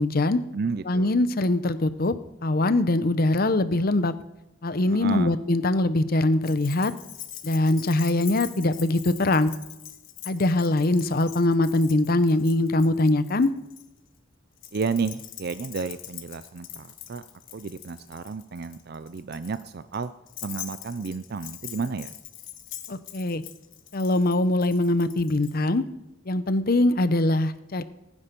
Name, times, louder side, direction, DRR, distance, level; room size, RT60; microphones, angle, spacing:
voice 1, 0.0-0.4 0.9-2.2 2.4-4.1 4.6-6.9 7.4-9.5 10.3-13.5 22.9-23.4 23.9-25.8 26.3-27.8, left 2 dB, 50° left, 13 dB, 0.8 m, -22 dB
voice 2, 0.5-1.2 4.9-5.3 14.7-17.2 17.5-20.1 20.4-22.1, right 4 dB, 55° right, 13 dB, 0.5 m, -32 dB
Keys jangling, 6.4-13.8 14.6-25.6, left 12 dB, 85° left, 1.4 m, -43 dB
19.5 x 9.9 x 5.3 m, 0.95 s
head